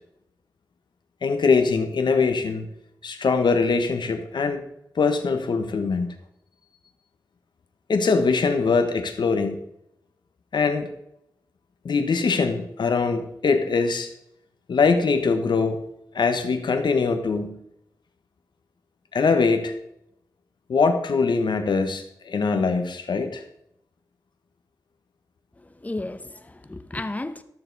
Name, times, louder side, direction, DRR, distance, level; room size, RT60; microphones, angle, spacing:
voice 1, 1.2-2.7 3.0-4.6 5.0-6.1 7.9-9.6 10.5-10.9 11.8-14.1 14.7-15.8 16.1-17.6 19.1-19.7 20.7-23.4, left 4 dB, 80° left, 1.2 m, -22 dB
voice 2, 25.6-27.4, left 2 dB, 20° left, 0.8 m, -33 dB
12.5 x 6.7 x 4.1 m
wide cardioid pair, 85°, 8 cm